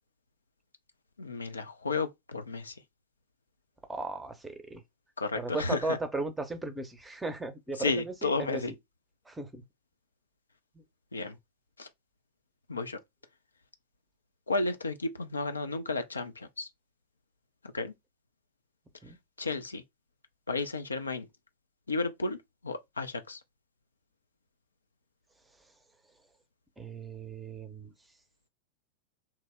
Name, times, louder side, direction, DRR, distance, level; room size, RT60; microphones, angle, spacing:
voice 1, 1.2-2.8 5.2-6.0 7.8-8.7 11.1-11.4 11.8-11.9 12.7-13.0 14.5-16.7 17.7-17.9 19.4-19.8 20.5-21.3 21.9-23.4, left 3 dB, 75° left, 0.4 m, -33 dB
voice 2, 3.9-4.8 5.4-8.8 9.3-9.6 10.7-10.8 19.0-19.2 26.8-27.9, right 2 dB, 10° right, 0.6 m, -36 dB
2.9 x 2.0 x 3.4 m
figure-of-eight pair, 90°, 0 cm